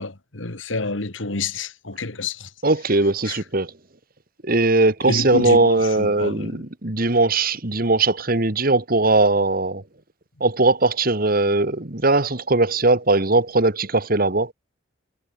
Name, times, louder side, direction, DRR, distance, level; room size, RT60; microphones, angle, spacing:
voice 1, 0.0-2.5 3.3-3.4 5.0-6.6, left 3 dB, 80° left, 2.1 m, -29 dB
voice 2, 2.6-3.7 4.4-9.8 10.4-14.5, right 2 dB, 45° right, 1.8 m, -19 dB
head